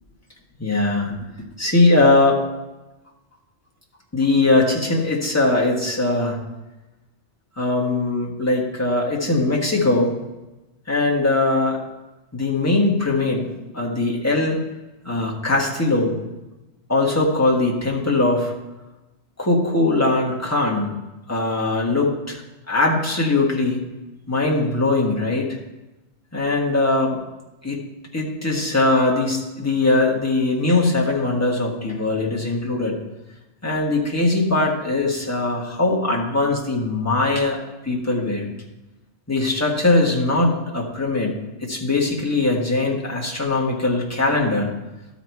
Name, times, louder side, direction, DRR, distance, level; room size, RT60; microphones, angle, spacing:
voice 1, 0.6-1.1 1.6-2.4 4.1-6.4 7.6-10.1 10.9-11.8 12.3-13.4 13.7-14.6 15.0-16.2 16.9-18.5 19.4-20.9 21.3-22.4 22.7-23.8 24.3-25.5 26.3-27.2 27.6-27.8 28.1-33.0 33.6-37.6 37.8-38.5 39.3-41.3 41.6-44.7, left 2 dB, 15° left, -3 dB, 1.4 m, -20 dB
12.5 x 4.2 x 4.6 m, 1.0 s
omnidirectional pair, 1.2 m